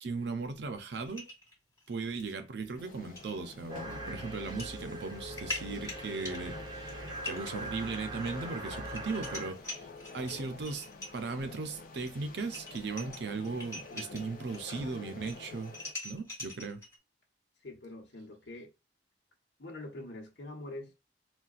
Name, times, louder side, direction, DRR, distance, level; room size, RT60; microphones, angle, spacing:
voice 1, 0.0-1.3 1.9-7.0 7.2-9.9 10.1-10.9 11.1-15.8 16.0-16.8, right 4 dB, 70° right, 0.5 m, -37 dB
sound 1, 1.1-2.3 2.7-2.8 3.2-3.3 4.3-4.7 5.1-11.3 12.1-12.2 12.4-14.8 15.1-17.0, left 2 dB, 15° left, 1.3 m, -44 dB
sound 2, 2.8-15.9, left 3 dB, 50° left, 0.5 m, -49 dB
sound 3, 3.7-9.5, right 1 dB, 25° right, 0.5 m, -42 dB
voice 2, 17.6-18.7 19.6-20.9, left 2 dB, 80° left, 1.1 m, -44 dB
4.0 x 2.2 x 2.4 m
head